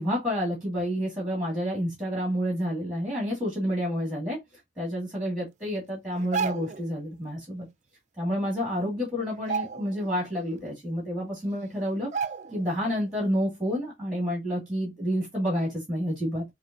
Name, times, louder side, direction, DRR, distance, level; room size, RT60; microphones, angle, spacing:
voice 1, 0.0-4.4 4.8-7.7 8.2-12.1 12.5-16.4, equal, 5° right, 2.4 m, -29 dB
sound 1, 6.1-6.9 8.3-8.4 8.7-9.0 9.4-10.2 10.6-10.7 11.5-11.6 12.1-12.7 13.1-13.3, right 5 dB, 35° right, 0.4 m, -32 dB
6.6 x 2.6 x 2.8 m
head